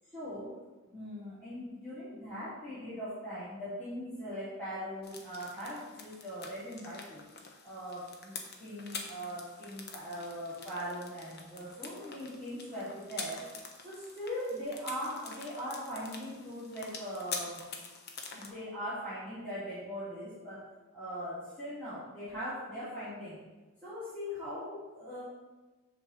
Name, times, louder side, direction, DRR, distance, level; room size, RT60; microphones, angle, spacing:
voice 1, 0.1-0.5 0.8-7.2 7.6-13.5 13.8-17.7 18.3-20.6 20.9-23.4 23.8-25.2, equal, 10° left, -14 dB, 2.7 m, -40 dB
sound 1, 5.0-18.5, left 4 dB, 45° left, 0.9 m, -46 dB
7.0 x 4.2 x 6.6 m, 1.2 s
head